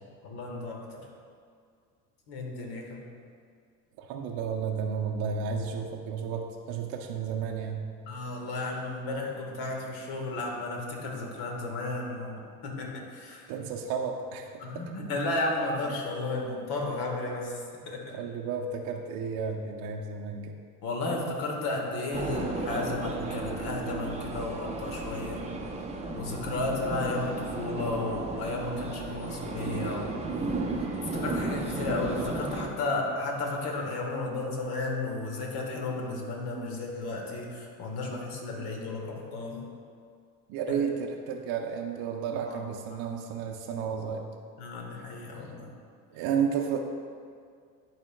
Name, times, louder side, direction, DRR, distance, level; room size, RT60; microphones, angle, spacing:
voice 1, 0.2-1.0 2.3-3.1 8.1-13.5 14.6-18.2 20.8-25.5 26.1-39.6 42.4-42.6 44.6-45.7, left 2 dB, 55° left, 0 dB, 1.5 m, -33 dB
voice 2, 4.0-7.9 13.5-14.5 18.1-20.6 40.5-44.2 46.1-46.8, right 6 dB, 50° right, 1 dB, 0.7 m, -32 dB
sound 1, 22.1-32.7, right 3 dB, 15° right, 0.7 m, -34 dB
11.0 x 4.3 x 2.2 m, 2.2 s
hypercardioid pair, 75°, 48 cm